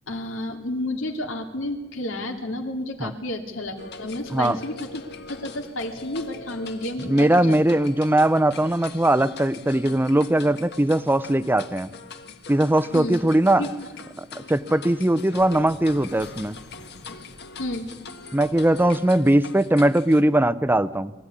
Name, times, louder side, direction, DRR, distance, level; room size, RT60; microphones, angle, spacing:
voice 1, 0.1-7.6 12.9-13.2 13.6-13.9 17.6-17.9, left 1 dB, 85° left, 5 dB, 2.8 m, -31 dB
sound 1, 3.8-20.2, left 4 dB, 60° left, 1.7 m, -42 dB
voice 2, 7.0-11.9 12.5-13.7 14.2-16.6 18.3-21.1, right 1 dB, 10° right, 15 dB, 0.7 m, -20 dB
23.0 x 15.5 x 9.9 m, 1.2 s
head